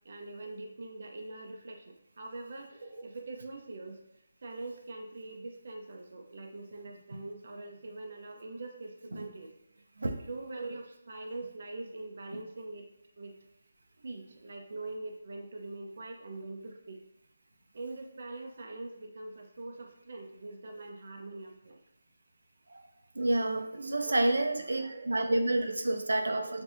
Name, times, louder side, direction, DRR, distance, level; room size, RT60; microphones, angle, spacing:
voice 1, 0.0-4.0 4.4-9.5 10.0-12.9 13.2-13.4 14.0-17.0 17.7-21.8 23.8-25.4 25.9-26.6, right 2 dB, 50° right, 3 dB, 0.5 m, -43 dB
voice 2, 23.2-26.6, right 2 dB, 90° right, 5 dB, 0.6 m, -29 dB
7.0 x 2.6 x 2.5 m, 0.84 s
figure-of-eight pair, 170°, 0 cm